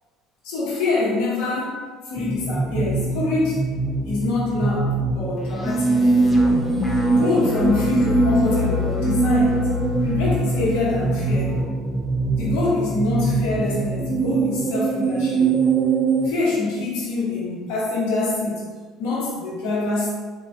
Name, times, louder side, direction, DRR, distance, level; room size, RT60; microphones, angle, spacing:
voice 1, 0.4-3.6 4.0-6.1 7.1-9.7 10.0-11.5 12.4-15.5 16.2-18.7 19.0-20.1, left 3 dB, 80° left, -6 dB, 0.9 m, -25 dB
sound 1, 2.2-16.3, right 3 dB, 20° right, 0.3 m, -22 dB
sound 2, 5.4-11.6, left 6 dB, 15° left, 0.6 m, -28 dB
3.2 x 2.3 x 2.5 m, 1.5 s
supercardioid pair, 95°, 0 cm